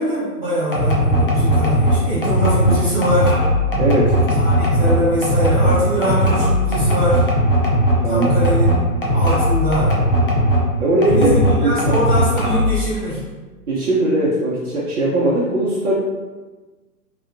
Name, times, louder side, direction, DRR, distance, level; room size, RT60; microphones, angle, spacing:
voice 1, 0.0-3.4 4.3-7.3 8.0-8.7 9.1-9.9 11.1-13.2, equal, 10° right, -11 dB, 1.3 m, -22 dB
sound 1, 0.7-10.7 11.0-12.8, equal, 40° left, 0.4 m, -17 dB
voice 2, 3.8-4.2 8.0-8.3 10.8-12.0 13.7-15.9, right 2 dB, 50° right, -7 dB, 0.6 m, -19 dB
2.8 x 2.4 x 2.5 m, 1.3 s
figure-of-eight pair, 125°, 48 cm